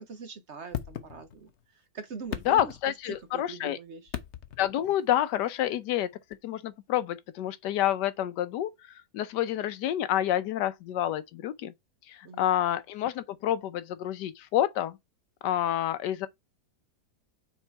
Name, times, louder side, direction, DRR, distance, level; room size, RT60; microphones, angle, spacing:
voice 1, 0.0-4.1 12.2-12.5, right 5 dB, 50° right, 1.0 m, -43 dB
sound 1, 0.7-1.6 2.1-3.3 4.1-4.8 6.3-6.4, left 10 dB, 60° left, 0.8 m, -38 dB
voice 2, 2.5-3.8 4.6-6.1 6.4-8.7 9.1-11.7 12.1-15.0 15.4-16.3, left 12 dB, 85° left, 1.3 m, -28 dB
6.1 x 3.7 x 4.5 m
omnidirectional pair, 1.8 m